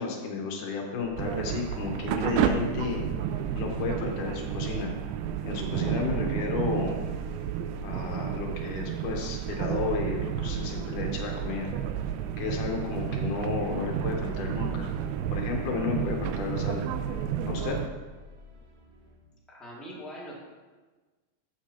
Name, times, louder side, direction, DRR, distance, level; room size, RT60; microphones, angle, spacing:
voice 1, 0.0-3.0 3.5-4.9 5.5-7.1 7.8-11.7 12.4-14.9 15.3-16.8 17.5-17.8, left 5 dB, 70° left, 1 dB, 2.5 m, -32 dB
sound 1, 0.9-19.2, left 2 dB, 70° right, 3.6 m, -49 dB
sound 2, 1.2-17.9, right 9 dB, 90° right, 2.3 m, -31 dB
voice 2, 19.5-20.4, equal, ahead, -6 dB, 1.2 m, -42 dB
12.5 x 7.5 x 2.9 m, 1.3 s
omnidirectional pair, 4.0 m